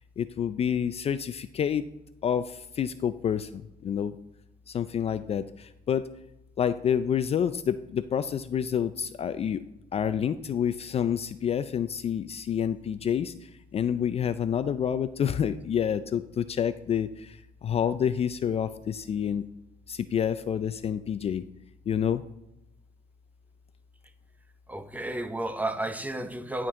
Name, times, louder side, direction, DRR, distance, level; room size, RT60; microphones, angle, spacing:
voice 1, 0.2-1.8 2.2-4.2 4.7-6.1 6.6-9.6 9.9-19.5 19.9-21.4 21.9-22.2, left 8 dB, 35° left, 0.4 m, -28 dB
voice 2, 24.7-26.7, right 1 dB, 10° right, 0.7 m, -32 dB
11.5 x 6.1 x 3.7 m
cardioid pair, 110°, 17 cm